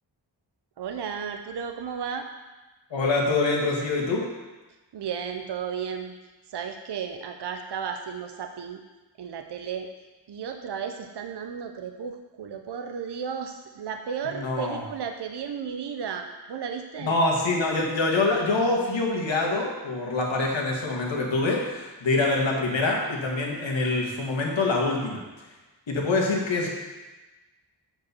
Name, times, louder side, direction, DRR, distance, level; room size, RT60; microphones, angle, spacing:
voice 1, 0.8-2.3 4.9-6.1 6.5-8.8 9.2-9.9 10.3-17.2, right 7 dB, 65° right, 6 dB, 0.7 m, -34 dB
voice 2, 2.9-4.3 14.2-14.8 17.0-25.2 25.9-26.7, left 3 dB, 80° left, -2 dB, 1.9 m, -25 dB
8.0 x 4.7 x 6.9 m, 1.2 s
wide cardioid pair, 110°, 45 cm